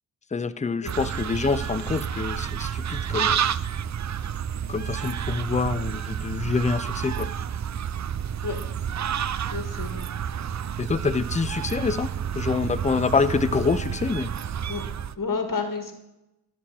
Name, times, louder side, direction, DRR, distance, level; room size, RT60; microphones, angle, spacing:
voice 1, 0.3-3.4 4.7-7.3 10.8-12.1 12.3-14.3, left 4 dB, 20° left, 15 dB, 0.5 m, -26 dB
sound 1, 0.9-15.2, right 8 dB, 50° right, 0.4 m, -30 dB
voice 2, 9.5-10.1 14.7-15.9, left 4 dB, 60° left, 6 dB, 1.7 m, -31 dB
11.0 x 4.7 x 7.5 m, 0.91 s
cardioid pair, 45°, 37 cm